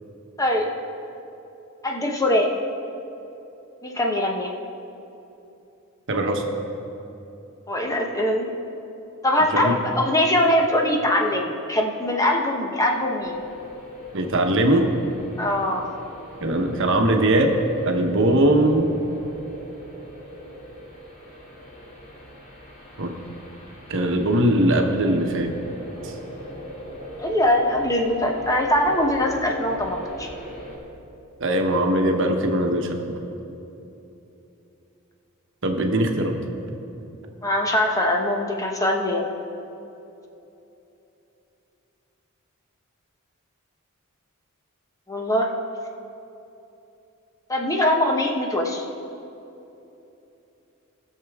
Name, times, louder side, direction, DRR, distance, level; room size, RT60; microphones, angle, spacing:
voice 1, 0.4-0.7 1.8-2.5 3.8-4.5 7.7-8.5 9.2-13.4 15.4-15.9 27.2-30.3 37.4-39.3 45.1-45.5 47.5-48.9, left 1 dB, 15° left, 1 dB, 0.9 m, -22 dB
voice 2, 6.1-6.4 9.5-9.8 14.1-14.9 16.4-17.5 17.8-18.9 23.0-23.1 23.9-25.5 26.0-26.1 31.4-33.2 35.6-36.3, right 1 dB, 60° right, 3 dB, 1.1 m, -20 dB
sound 1, 13.2-30.8, equal, 40° left, 2.0 m, -40 dB
19.5 x 6.6 x 3.6 m, 2.9 s
head